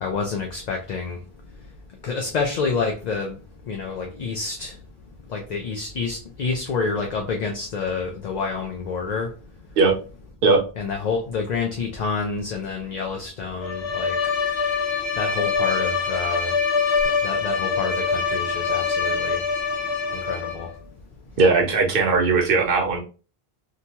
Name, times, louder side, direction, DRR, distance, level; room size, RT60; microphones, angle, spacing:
voice 1, 0.0-1.2 2.0-3.4 3.7-4.7 5.3-9.3 10.8-14.1 15.2-16.5 17.2-19.4 20.2-20.7, left 4 dB, 55° left, 2 dB, 0.5 m, -28 dB
Bowed string instrument, 13.6-20.7, left 5 dB, 85° left, 1.0 m, -24 dB
voice 2, 21.4-23.0, right 4 dB, 65° right, 3 dB, 0.9 m, -18 dB
2.8 x 2.2 x 2.8 m, 0.34 s
omnidirectional pair, 1.0 m